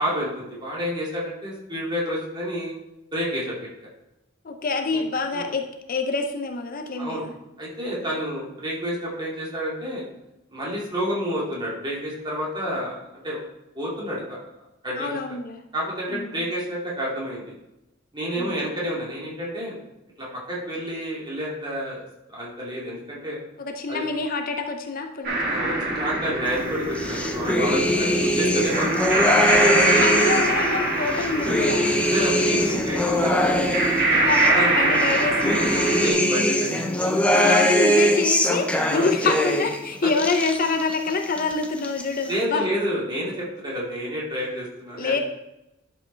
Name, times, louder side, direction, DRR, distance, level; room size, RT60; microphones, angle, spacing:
voice 1, 0.0-2.7 3.1-3.9 4.9-5.0 5.3-5.5 7.0-7.3 7.6-10.0 10.5-13.4 13.7-14.4 14.8-15.2 15.7-17.5 18.1-19.8 20.2-22.0 22.3-23.4 23.9-24.0 25.4-29.1 29.8-30.4 32.1-33.8 34.4-35.0 36.0-37.2 38.9-39.1 40.0-40.1 42.3-45.2, equal, 25° right, -6 dB, 2.6 m, -29 dB
voice 2, 4.4-7.3 15.0-15.6 16.1-16.3 18.3-18.5 23.6-25.5 29.8-32.0 34.2-36.0 37.4-42.6 45.0-45.2, left 4 dB, 45° left, 5 dB, 0.6 m, -26 dB
sound 1, 25.2-36.1, right 2 dB, 55° right, 2.1 m, -24 dB
sound 2, 27.0-30.6 31.1-34.5 35.0-39.8 40.1-41.0 41.2-42.0, equal, 5° left, 0.7 m, -22 dB
11.5 x 5.3 x 3.4 m, 0.93 s
head